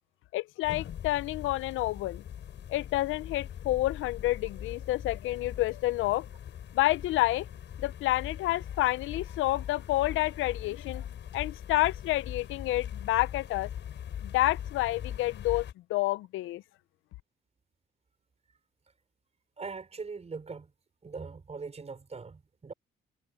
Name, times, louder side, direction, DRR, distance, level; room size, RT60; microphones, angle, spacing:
voice 1, 0.3-2.2 2.7-6.3 6.7-7.5 7.8-11.0 11.3-13.7 14.2-16.6, left 17 dB, 85° left, 0.5 m, -29 dB
sound 1, 0.6-15.7, left 9 dB, 65° left, 6.5 m, -41 dB
voice 2, 19.6-20.7 21.0-22.7, right 4 dB, 35° right, 5.4 m, -41 dB
cardioid pair, 90°, 20 cm